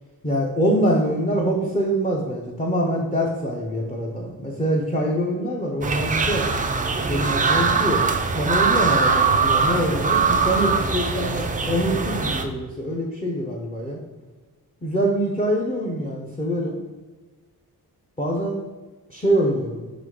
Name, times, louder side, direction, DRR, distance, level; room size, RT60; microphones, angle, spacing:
voice 1, 0.2-6.4 7.1-8.0 8.3-14.0 14.8-16.8 18.2-18.6 19.1-19.9, right 1 dB, 15° left, -2 dB, 0.7 m, -24 dB
sound 1, 5.8-12.4, right 4 dB, 25° right, 0.3 m, -22 dB
5.3 x 4.0 x 4.7 m, 1.3 s
wide cardioid pair, 180°, 38 cm